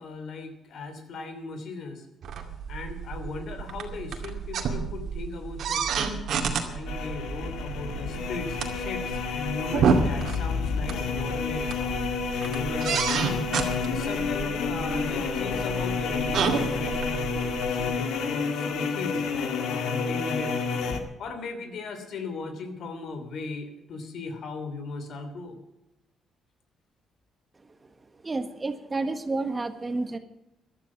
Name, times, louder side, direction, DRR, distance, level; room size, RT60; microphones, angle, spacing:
voice 1, 0.0-2.0 2.7-13.5 13.9-19.2 19.7-20.6 21.2-25.6, left 3 dB, 65° left, 9 dB, 3.0 m, -37 dB
sound 1, 2.2-17.9, right 6 dB, 65° right, 2.3 m, -30 dB
sound 2, 6.9-21.0, left 5 dB, 80° left, 1.9 m, -30 dB
voice 2, 28.2-30.2, right 3 dB, 25° right, 8 dB, 1.6 m, -30 dB
14.5 x 12.0 x 6.1 m, 0.91 s
cardioid pair, 90°, 0 cm